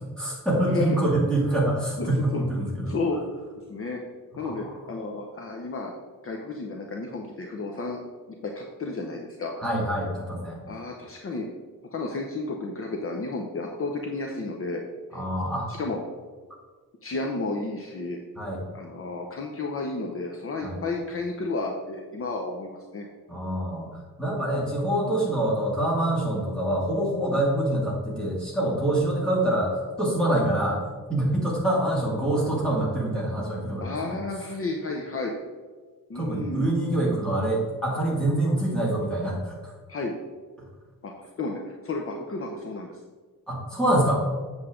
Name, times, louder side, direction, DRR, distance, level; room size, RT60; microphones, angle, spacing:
voice 1, 0.0-3.0 4.4-4.7 9.6-10.6 15.1-15.7 18.4-18.7 20.6-20.8 23.3-30.8 31.1-34.1 36.1-39.8 40.6-40.7 43.5-44.3, right 1 dB, 5° left, -5 dB, 2.3 m, -25 dB
voice 2, 2.0-3.2 3.7-4.0 4.4-5.9 6.2-8.0 8.4-9.6 10.7-11.5 11.9-14.8 15.8-16.0 17.0-18.2 18.7-23.1 33.8-35.3 36.1-36.7 39.9-40.1 41.0-43.0, left 3 dB, 40° left, 1 dB, 0.8 m, -32 dB
8.0 x 7.2 x 3.7 m, 1.4 s
wide cardioid pair, 160°, 33 cm